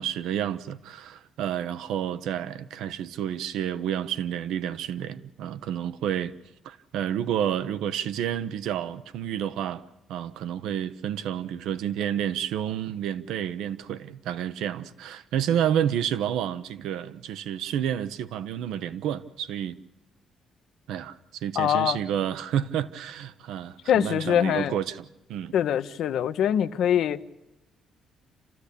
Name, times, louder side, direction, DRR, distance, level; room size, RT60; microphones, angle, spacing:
voice 1, 0.0-6.3 6.6-9.8 10.1-19.8 20.9-25.6, right 10 dB, 85° right, 0.7 m, -30 dB
voice 2, 21.6-22.0 23.9-24.7 25.5-27.2, left 10 dB, 75° left, 0.7 m, -23 dB
28.5 x 13.5 x 8.4 m
cardioid pair, 90°, 0 cm